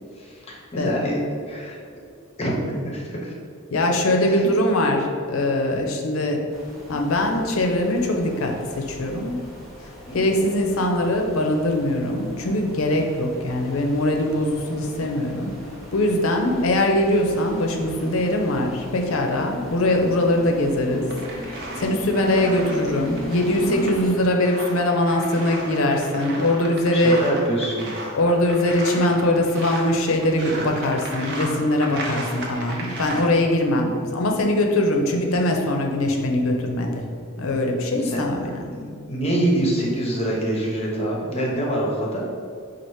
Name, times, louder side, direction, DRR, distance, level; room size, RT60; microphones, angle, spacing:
voice 1, 0.2-1.2 1.5-1.8 2.4-3.3 4.2-4.4 10.1-10.5 26.9-27.9 38.1-42.2, right 1 dB, 30° left, -2 dB, 0.7 m, -26 dB
voice 2, 3.7-6.4 6.9-9.4 10.1-15.5 15.9-21.1 21.4-27.2 28.1-37.0 37.4-38.5, left 1 dB, 75° left, 2 dB, 0.6 m, -22 dB
sound 1, 6.5-24.1, left 1 dB, ahead, 0.9 m, -39 dB
sound 2, 21.1-33.3, right 2 dB, 55° right, 0.7 m, -35 dB
4.3 x 2.5 x 4.6 m, 2.3 s
head